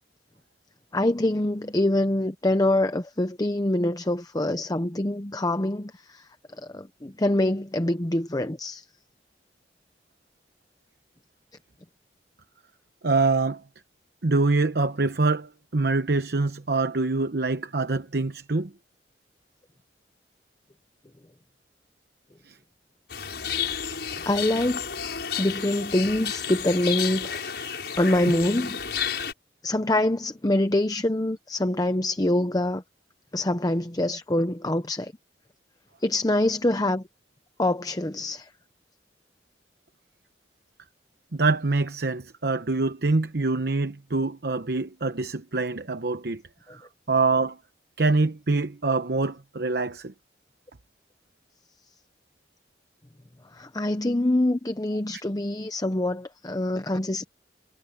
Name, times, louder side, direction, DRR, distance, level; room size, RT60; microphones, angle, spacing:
voice 1, 0.9-6.3 6.7-8.8 24.3-24.9 25.4-27.5 28.0-28.8 29.6-32.8 33.3-35.1 36.0-37.0 37.6-38.5 53.5-57.2, left 1 dB, 20° left, 0.8 m, -25 dB
voice 2, 13.0-13.6 14.2-18.7 22.4-22.6 41.3-46.4 46.7-47.6 48.0-50.1, right 3 dB, 60° right, 0.9 m, -25 dB
sound 1, 23.1-29.3, left 7 dB, 70° left, 6.8 m, -31 dB
head